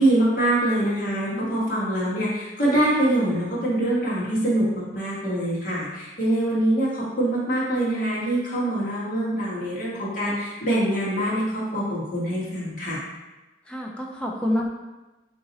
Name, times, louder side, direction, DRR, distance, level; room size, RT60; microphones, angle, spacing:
voice 1, 0.0-13.0, right 1 dB, 50° left, -7 dB, 1.4 m, -24 dB
voice 2, 1.3-1.7 13.7-14.7, left 1 dB, 5° left, -1 dB, 0.5 m, -28 dB
3.9 x 3.0 x 3.9 m, 1.1 s
head